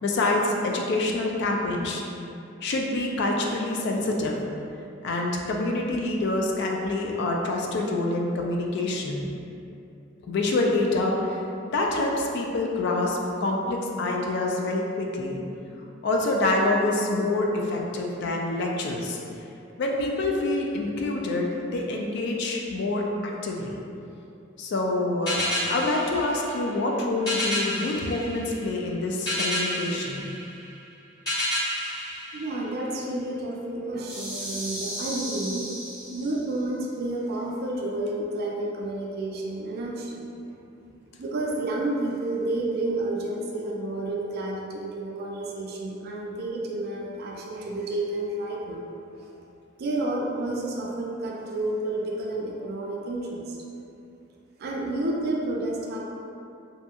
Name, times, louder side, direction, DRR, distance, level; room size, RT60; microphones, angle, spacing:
voice 1, 0.0-2.1 2.6-4.4 5.0-9.3 10.2-11.4 11.7-15.4 16.0-19.2 19.8-23.8 24.6-30.3, left 2 dB, 55° left, 0 dB, 0.3 m, -26 dB
sound 1, 25.3-33.1, left 1 dB, 20° left, 1.3 m, -31 dB
voice 2, 32.3-35.7 36.1-40.3 41.2-48.8 49.2-49.3 49.8-53.6 54.6-56.0, right 2 dB, 50° right, -1 dB, 0.3 m, -30 dB
sound 2, 34.0-36.6, equal, 5° right, 0.6 m, -35 dB
2.7 x 2.5 x 2.3 m, 2.7 s
head